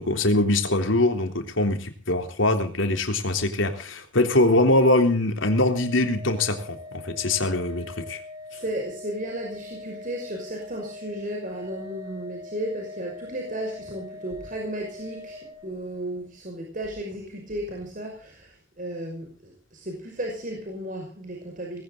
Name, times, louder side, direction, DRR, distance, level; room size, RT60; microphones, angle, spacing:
voice 1, 0.0-8.2, left 2 dB, 85° left, 5 dB, 3.6 m, -23 dB
Organ, 5.5-16.1, left 2 dB, 5° left, 6.5 m, -42 dB
voice 2, 8.5-21.8, right 1 dB, 45° right, 1 dB, 5.8 m, -34 dB
19.5 x 17.5 x 3.9 m, 0.38 s
head